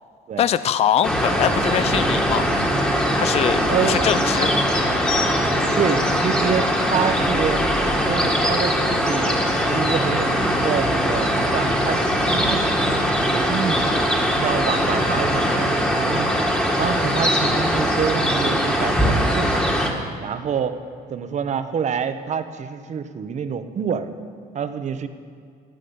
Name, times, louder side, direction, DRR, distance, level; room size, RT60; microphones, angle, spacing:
voice 1, 0.4-2.6 3.2-4.5, left 10 dB, 40° left, 15 dB, 0.4 m, -22 dB
sound 1, 1.0-19.9, equal, 5° left, 1.8 m, -21 dB
voice 2, 3.7-4.1 5.7-7.6 7.9-9.4 9.7-13.0 13.3-14.0 14.3-16.4 16.8-19.6 20.2-20.8 21.1-24.1 24.5-25.1, right 7 dB, 45° right, 10 dB, 0.9 m, -27 dB
14.0 x 8.3 x 7.0 m, 2.2 s
cardioid pair, 110°, 17 cm